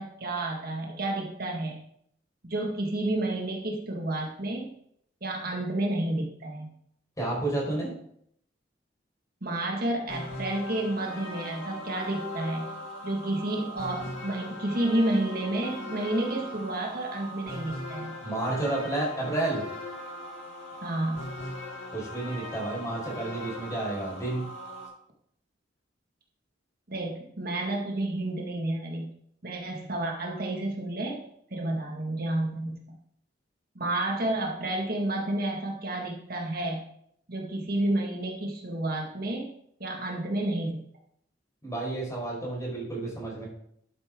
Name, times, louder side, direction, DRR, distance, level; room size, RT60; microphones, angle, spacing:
voice 1, 0.0-1.8 2.4-4.7 5.2-6.7 9.4-12.7 13.0-18.2 20.8-21.4 26.9-29.1 29.4-31.2 31.5-32.8 33.8-36.8 37.3-39.5 39.8-40.8, right 1 dB, 50° right, 0 dB, 1.9 m, -30 dB
voice 2, 7.2-7.9 18.2-19.6 21.9-24.5 41.6-43.5, right 2 dB, 20° left, -4 dB, 5.3 m, -31 dB
sound 1, 10.1-24.9, left 1 dB, 85° left, 4.8 m, -40 dB
11.5 x 9.7 x 3.8 m, 0.68 s
head